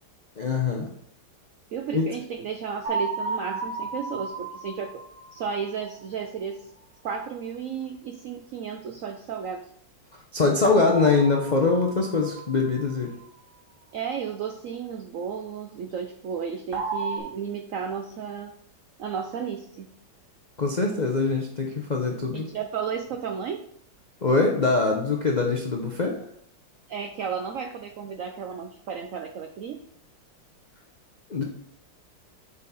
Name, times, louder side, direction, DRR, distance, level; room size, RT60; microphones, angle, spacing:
voice 1, 0.4-0.9 1.9-2.1 10.1-13.1 20.6-22.4 24.2-26.2 31.3-31.4, left 3 dB, 70° left, 1 dB, 0.4 m, -23 dB
voice 2, 1.7-5.0 5.3-6.7 7.0-9.7 13.9-18.5 19.0-19.9 22.3-23.6 26.9-29.8, right 7 dB, 80° right, 6 dB, 0.7 m, -33 dB
sound 1, 2.8-5.8 10.6-12.8 16.7-17.2, right 3 dB, 35° right, 1.1 m, -33 dB
7.5 x 4.2 x 4.0 m, 0.66 s
omnidirectional pair, 2.0 m